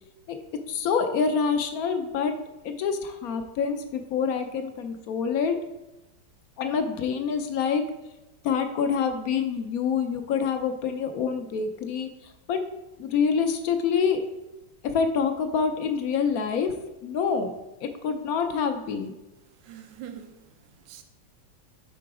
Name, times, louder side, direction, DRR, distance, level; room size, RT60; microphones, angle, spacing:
voice 1, 0.7-2.3 2.6-5.6 6.6-7.8 8.4-12.1 12.5-12.6 13.0-14.2 14.8-16.7 17.0-17.5 17.8-19.1, left 6 dB, 65° left, 0.9 m, -26 dB
voice 2, 19.4-21.0, right 9 dB, 75° right, 1.4 m, -45 dB
8.5 x 3.9 x 4.8 m
omnidirectional pair, 2.0 m